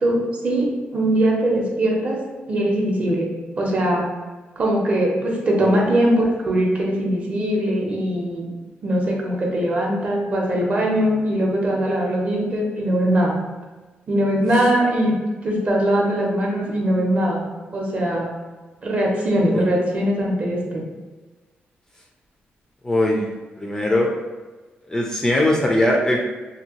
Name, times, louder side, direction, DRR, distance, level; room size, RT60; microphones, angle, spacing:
voice 1, 0.0-2.2 2.5-3.3 3.6-4.1 4.6-8.5 8.8-13.4 14.1-15.1 15.4-17.5 17.7-18.3 18.8-20.8, right 1 dB, 40° right, -1 dB, 0.6 m, -21 dB
voice 2, 22.8-23.3 23.6-24.1 24.9-26.2, left 1 dB, 15° left, -1 dB, 0.3 m, -20 dB
2.7 x 2.6 x 2.8 m, 1.3 s
wide cardioid pair, 150°, 4 cm